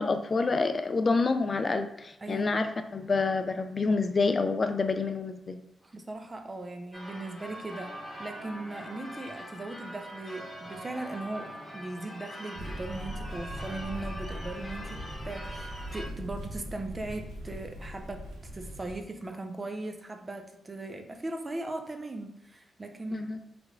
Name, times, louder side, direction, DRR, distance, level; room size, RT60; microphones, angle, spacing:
voice 1, 0.0-5.6 23.1-23.4, left 4 dB, 45° left, 8 dB, 0.4 m, -28 dB
voice 2, 2.2-2.6 5.8-15.0 15.2-18.3 18.5-23.3, right 2 dB, 30° right, 5 dB, 0.7 m, -38 dB
Church bell / Car / Alarm, 6.9-16.1, equal, 20° left, 1.5 m, -43 dB
sound 1, 12.5-19.0, equal, 85° right, 1.0 m, -40 dB
3.4 x 3.0 x 3.7 m, 0.84 s
cardioid pair, 55°, 0 cm